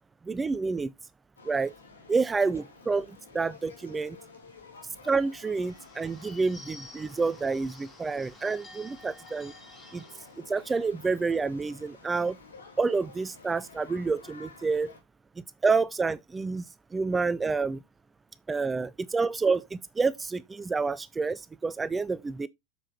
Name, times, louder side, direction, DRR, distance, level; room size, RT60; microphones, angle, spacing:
voice 1, 0.3-0.9 1.4-1.7 2.1-4.2 5.0-9.5 9.9-10.0 10.5-12.4 12.8-14.9 15.6-16.7 16.9-17.8 18.5-22.5, right 4 dB, 15° right, 0.4 m, -28 dB
sound 1, 1.4-15.0, left 4 dB, 70° left, 2.8 m, -52 dB
Bird / Bell, 5.4-10.4, left 2 dB, 15° left, 2.4 m, -51 dB
7.3 x 6.7 x 2.9 m
figure-of-eight pair, 90°, 0 cm